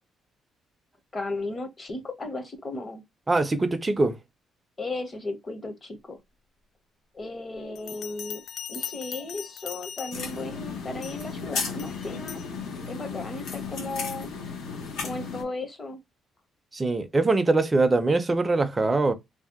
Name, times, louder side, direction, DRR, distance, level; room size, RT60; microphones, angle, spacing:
voice 1, 1.1-3.0 4.8-6.2 7.1-8.4 8.7-12.4 12.9-14.3 15.0-16.0, left 2 dB, 25° left, 0.7 m, -35 dB
voice 2, 3.3-4.2 16.7-19.1, right 3 dB, 20° right, 0.4 m, -23 dB
Bell, 7.8-10.5 11.0-11.3 11.8-12.5, left 8 dB, 65° left, 0.3 m, -39 dB
sound 1, 10.1-15.4, left 5 dB, 85° left, 0.8 m, -34 dB
2.7 x 2.1 x 3.5 m
cardioid pair, 145°, 0 cm